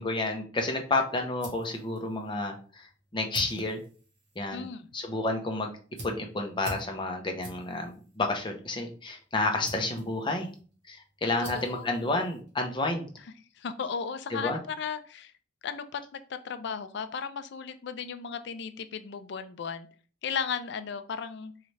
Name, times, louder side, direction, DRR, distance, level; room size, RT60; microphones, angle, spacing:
voice 1, 0.0-2.9 3.1-3.8 4.4-4.6 4.9-5.7 6.0-10.5 10.9-13.1 14.3-14.6, left 2 dB, 25° left, 3 dB, 0.6 m, -30 dB
sound 1, 0.8-12.9, right 1 dB, 65° right, 1.4 m, -48 dB
voice 2, 4.5-4.9 9.8-10.1 11.2-12.2 13.6-15.3 15.6-19.9 20.2-21.5, left 6 dB, 65° left, 11 dB, 0.4 m, -36 dB
4.1 x 2.4 x 3.2 m, 0.40 s
head